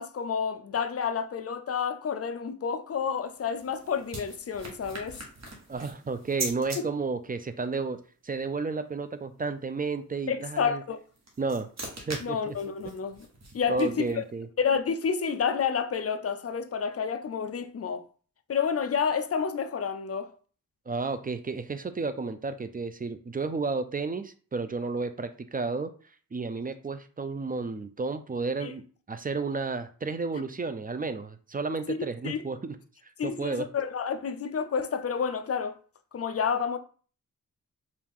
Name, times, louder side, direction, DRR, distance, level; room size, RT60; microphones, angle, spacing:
voice 1, 0.0-5.2 10.3-11.0 12.2-13.3 13.5-14.1 14.6-18.1 18.5-20.3 28.6-28.7 30.3-30.4 31.9-32.0 32.2-32.4 33.2-35.8 36.1-36.8, left 6 dB, 45° left, 0.4 m, -29 dB
sound 1, 3.2-6.8 10.9-14.3, right 2 dB, 50° right, 1.1 m, -41 dB
voice 2, 5.7-8.0 8.2-10.8 11.4-11.7 12.1-12.6 13.7-14.5 20.9-25.9 26.3-28.8 29.1-32.8 33.2-33.7, right 4 dB, 25° right, 0.3 m, -32 dB
4.6 x 2.4 x 3.6 m
wide cardioid pair, 105°, 35 cm